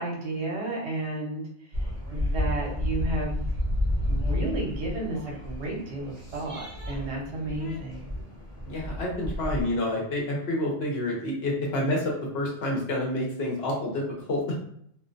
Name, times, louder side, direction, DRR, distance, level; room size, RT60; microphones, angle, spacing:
voice 1, 0.0-1.4 1.8-3.5 4.1-8.2, right 2 dB, 65° right, -2 dB, 1.0 m, -33 dB
sound 1, 1.7-9.6, left 1 dB, 35° right, 0.7 m, -31 dB
voice 2, 8.7-14.6, left 1 dB, 60° left, -2 dB, 0.8 m, -28 dB
2.4 x 2.1 x 2.5 m, 0.66 s
omnidirectional pair, 1.3 m